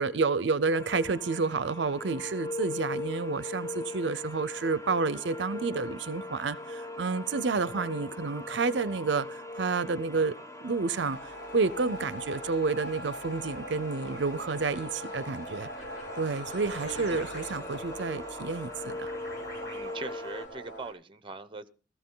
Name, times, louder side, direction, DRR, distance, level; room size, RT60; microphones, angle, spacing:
voice 1, 0.0-10.4 10.6-15.7 16.2-19.1, right 4 dB, 65° right, 0.6 m, -30 dB
sound 1, 0.7-20.5, left 2 dB, 15° left, 1.3 m, -41 dB
sound 2, 11.0-20.9, equal, 55° left, 7.1 m, -42 dB
voice 2, 19.6-21.7, right 3 dB, 25° right, 0.8 m, -41 dB
15.5 x 14.5 x 3.8 m
head